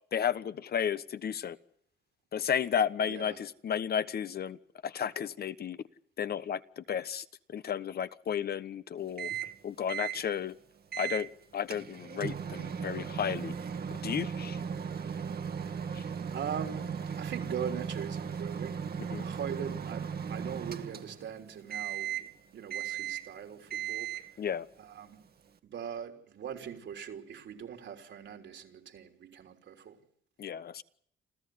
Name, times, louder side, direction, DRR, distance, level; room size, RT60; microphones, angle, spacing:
voice 1, 0.1-1.6 2.3-4.6 4.8-5.8 6.2-7.2 7.5-9.3 9.6-10.5 11.0-13.5 13.9-14.6 15.9-16.0 19.1-19.3 24.4-24.7 30.4-30.8, left 8 dB, 50° left, 1.1 m, -33 dB
voice 2, 3.0-3.4 16.3-18.8 19.2-24.2 24.8-25.2 25.6-30.0, right 8 dB, 65° right, 3.6 m, -41 dB
Microwave oven, 9.2-9.6 9.9-10.2 10.9-11.3 11.7-21.3 21.7-22.3 22.7-23.3 23.7-24.3, right 7 dB, 50° right, 1.9 m, -37 dB
28.5 x 13.5 x 9.5 m
cardioid pair, 90°, 20 cm